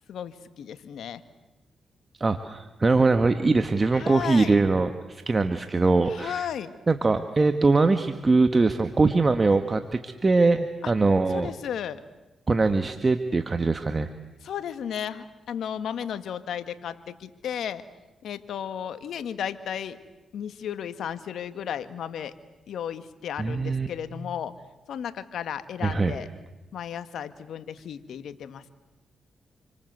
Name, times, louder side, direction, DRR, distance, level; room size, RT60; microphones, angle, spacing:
voice 1, 0.1-1.2 3.9-4.6 6.1-6.7 10.8-10.9 11.3-12.0 14.4-17.8 18.2-20.0 20.3-22.3 22.7-24.5 24.9-26.3 26.7-28.7, left 9 dB, 75° left, 11 dB, 1.6 m, -34 dB
voice 2, 2.2-6.5 6.9-11.5 12.5-14.1 23.4-23.9 25.8-26.2, right 3 dB, 35° right, 7 dB, 1.8 m, -22 dB
29.0 x 24.5 x 8.1 m, 1.1 s
supercardioid pair, 55°, 0 cm